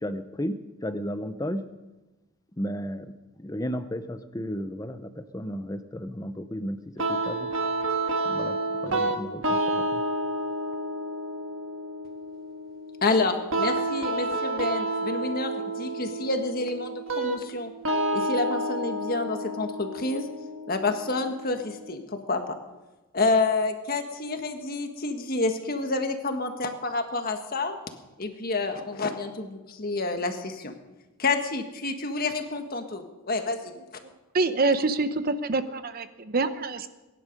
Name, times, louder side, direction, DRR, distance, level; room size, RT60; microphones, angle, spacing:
voice 1, 0.0-1.6 2.6-7.5 8.2-10.0, equal, 15° left, 10 dB, 0.7 m, -34 dB
sound 1, 7.0-21.9, right 1 dB, 60° right, 1.7 m, -30 dB
voice 2, 13.0-17.7 18.1-20.3 20.7-22.4 23.1-27.8 28.2-30.7 31.2-33.7, left 3 dB, 40° left, 5 dB, 1.6 m, -28 dB
voice 3, 34.3-36.9, right 3 dB, 40° right, 11 dB, 0.8 m, -26 dB
23.0 x 11.0 x 5.4 m, 1.1 s
head